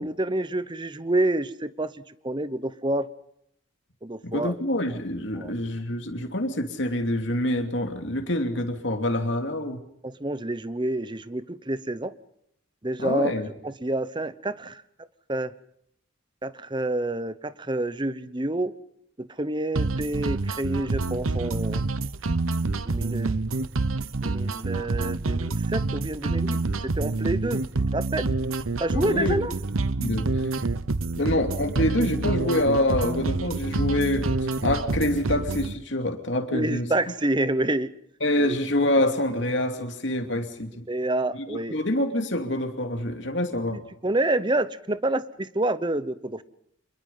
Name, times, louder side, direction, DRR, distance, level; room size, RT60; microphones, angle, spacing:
voice 1, 0.0-1.9 2.2-3.1 4.0-4.5 5.4-5.5 10.0-12.1 12.8-13.3 13.6-14.8 15.3-15.5 16.4-18.7 19.2-21.8 22.9-23.4 24.2-27.6 27.9-28.3 28.8-29.5 36.5-37.9 38.4-38.6 40.9-41.8 44.0-46.4, right 1 dB, 20° right, 14 dB, 0.9 m, -28 dB
voice 2, 4.2-9.8 13.0-13.5 28.9-29.4 30.0-30.3 31.2-34.3 34.6-36.9 38.2-40.9 41.3-43.8, left 1 dB, 60° left, 4 dB, 2.9 m, -26 dB
sound 1, 19.8-35.8, right 3 dB, 90° right, 1.0 m, -27 dB
27.0 x 21.5 x 5.7 m, 0.72 s
head